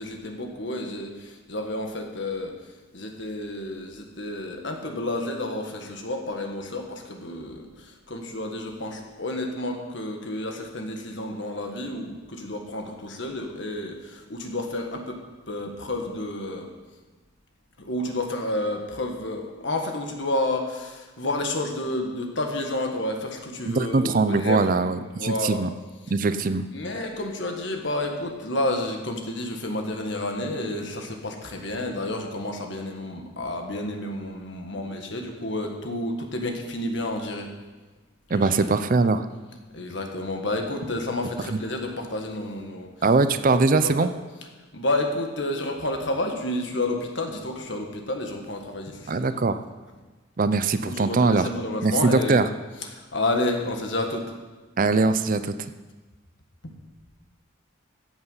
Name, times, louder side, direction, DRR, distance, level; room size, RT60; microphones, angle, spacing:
voice 1, 0.0-16.7 17.8-24.8 25.2-25.6 26.7-37.5 38.3-38.5 39.7-42.9 43.5-44.1 44.7-49.4 50.8-52.4 52.9-54.3 56.6-56.7, left 1 dB, 60° left, 3 dB, 1.6 m, -30 dB
voice 2, 23.7-25.7 26.1-26.7 38.3-39.2 43.0-44.1 49.1-49.6 50.4-51.5 51.8-52.4 54.8-55.5, right 3 dB, 40° right, 11 dB, 0.5 m, -21 dB
14.5 x 8.2 x 5.5 m, 1.2 s
head